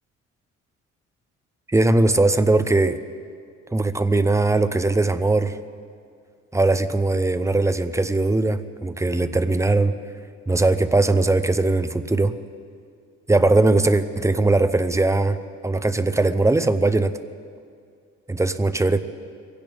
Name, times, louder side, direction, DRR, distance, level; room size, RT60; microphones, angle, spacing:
voice 1, 1.7-3.0 3.7-5.6 6.5-9.9 10.5-12.3 13.3-15.4 15.6-17.1 18.3-19.0, right 2 dB, 10° right, 12 dB, 0.8 m, -20 dB
23.5 x 16.5 x 3.6 m, 2.3 s
cardioid pair, 90°, 29 cm